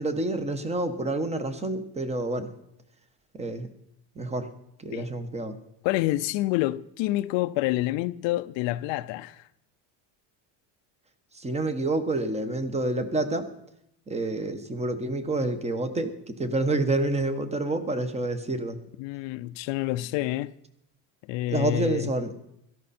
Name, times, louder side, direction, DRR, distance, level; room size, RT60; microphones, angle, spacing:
voice 1, 0.0-2.5 3.4-3.7 4.2-4.5 4.8-5.5 11.3-13.5 14.1-18.8 21.5-22.3, right 2 dB, 15° right, 1.2 m, -28 dB
voice 2, 5.8-9.5 19.0-20.5 21.3-22.1, left 16 dB, 70° left, 0.6 m, -28 dB
17.0 x 14.0 x 4.3 m
cardioid pair, 145°, 47 cm